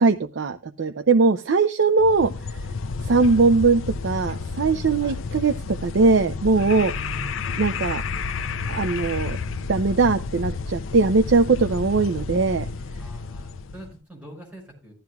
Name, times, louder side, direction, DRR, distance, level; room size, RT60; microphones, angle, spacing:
voice 1, 0.0-2.3 3.0-6.9 7.6-8.0 8.7-9.4 9.7-12.7, right 4 dB, 70° right, 9 dB, 0.5 m, -20 dB
sound 1, 2.0-13.9, left 4 dB, 80° left, 0.6 m, -31 dB
voice 2, 6.9-7.7 13.0-14.9, right 1 dB, 5° right, -2 dB, 6.2 m, -43 dB
15.5 x 12.5 x 2.3 m, 0.30 s
head